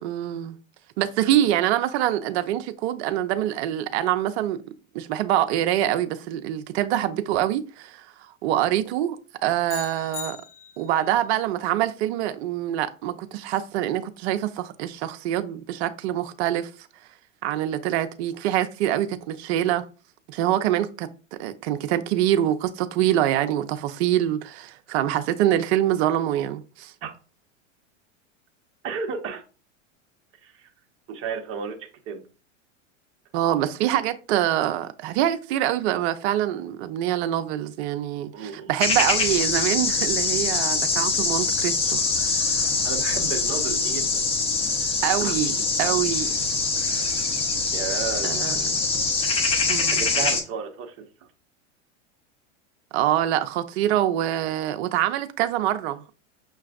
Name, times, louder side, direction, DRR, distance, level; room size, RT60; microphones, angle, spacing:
voice 1, 0.0-0.6 1.0-4.6 4.9-8.1 8.4-9.2 9.4-10.4 10.8-16.7 17.4-19.8 20.3-21.1 21.4-26.9 33.3-42.6 45.0-46.3 48.2-48.7 49.7-50.0 52.9-56.0, right 12 dB, 55° right, 0.5 m, -25 dB
sound 1, 9.7-11.1, left 7 dB, 55° left, 1.7 m, -38 dB
voice 2, 28.8-29.4 30.4-30.7 31.1-32.2 38.3-38.7 42.6-44.1 44.6-45.5 47.7-48.5 49.9-51.0, right 6 dB, 35° right, 0.9 m, -33 dB
sound 2, 38.8-50.4, left 4 dB, 15° left, 0.4 m, -24 dB
5.8 x 2.4 x 2.3 m
hypercardioid pair, 110°, 38 cm